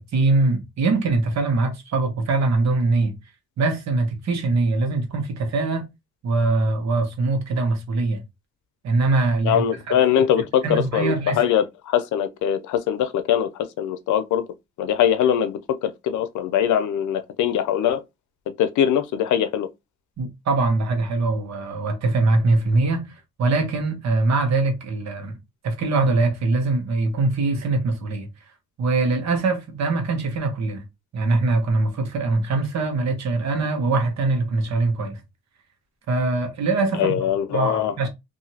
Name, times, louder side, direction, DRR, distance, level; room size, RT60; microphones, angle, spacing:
voice 1, 0.0-3.1 3.6-5.9 6.2-8.2 8.8-9.9 10.6-11.4 20.2-23.1 23.4-25.4 25.6-28.3 28.8-30.8 31.1-35.2 36.1-37.1 37.5-38.1, right 3 dB, 65° right, 1.2 m, -22 dB
voice 2, 9.4-14.4 14.8-18.0 18.6-19.7 37.0-37.9, left 9 dB, 75° left, 0.6 m, -22 dB
2.8 x 2.7 x 2.7 m
cardioid pair, 90°, 30 cm